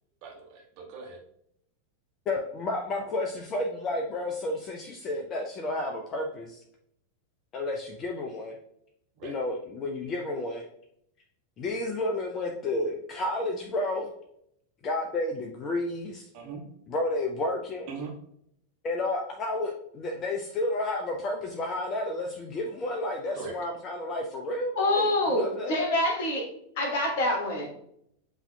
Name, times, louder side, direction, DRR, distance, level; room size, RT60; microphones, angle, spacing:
voice 1, 0.2-1.2 9.1-9.4 16.3-16.6 17.9-18.2 23.3-23.6, right 5 dB, 45° right, 0 dB, 1.1 m, -40 dB
voice 2, 2.3-6.6 7.5-8.5 9.2-10.6 11.6-14.1 14.8-16.3 16.9-17.9 18.8-25.8, left 2 dB, 30° left, 2 dB, 0.5 m, -31 dB
voice 3, 24.7-26.5 26.8-27.7, left 1 dB, 50° left, 0 dB, 1.4 m, -26 dB
7.8 x 2.8 x 2.2 m, 0.73 s
figure-of-eight pair, 90°, 0 cm